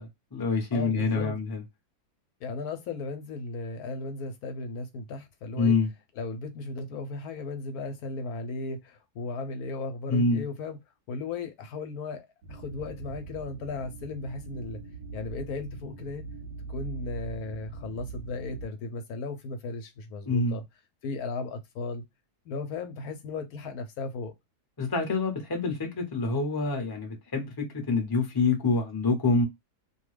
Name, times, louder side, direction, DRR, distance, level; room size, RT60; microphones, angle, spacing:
voice 1, 0.0-1.6 5.6-5.9 10.1-10.4 20.3-20.6 24.8-29.4, left 3 dB, 20° left, 0.6 m, -26 dB
voice 2, 0.7-1.4 2.4-5.7 6.1-10.8 11.1-14.8 15.1-16.2 16.7-20.6 21.0-22.0 22.5-24.3, left 3 dB, 75° left, 1.1 m, -36 dB
sound 1, 12.4-18.6, right 3 dB, 70° right, 0.9 m, -41 dB
2.6 x 2.2 x 3.1 m
omnidirectional pair, 1.7 m